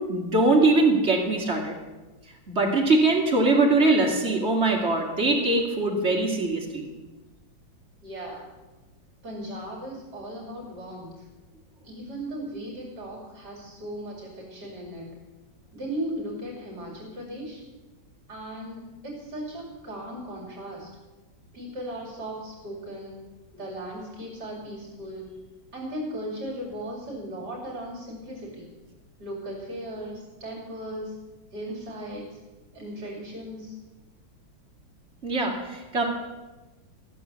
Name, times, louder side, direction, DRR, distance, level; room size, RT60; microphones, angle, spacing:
voice 1, 0.1-1.8 2.5-6.9 35.2-36.0, right 2 dB, 35° right, 0 dB, 2.5 m, -22 dB
voice 2, 8.0-8.5 9.2-11.2 11.8-15.1 15.7-17.6 18.3-20.9 21.5-23.2 23.5-25.3 25.7-28.7 29.2-31.1 31.5-32.4 32.7-33.8, right 1 dB, 55° right, -2 dB, 3.3 m, -37 dB
14.5 x 6.9 x 8.2 m, 1.2 s
omnidirectional pair, 2.1 m